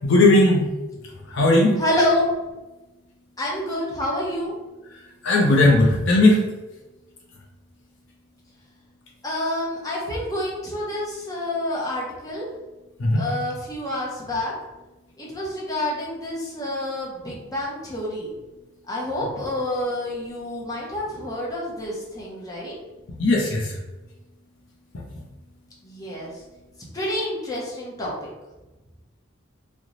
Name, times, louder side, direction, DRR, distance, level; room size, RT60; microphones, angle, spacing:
voice 1, 0.0-0.7 1.3-1.7 5.2-6.4 13.0-13.2 23.2-23.7, left 2 dB, 60° left, -2 dB, 0.6 m, -17 dB
voice 2, 1.8-2.3 3.4-4.5 9.2-12.5 13.1-14.5 15.2-18.3 18.9-22.8 25.8-26.4 26.9-28.1, left 1 dB, 15° left, -5 dB, 0.7 m, -28 dB
3.0 x 2.1 x 3.7 m, 1.1 s
head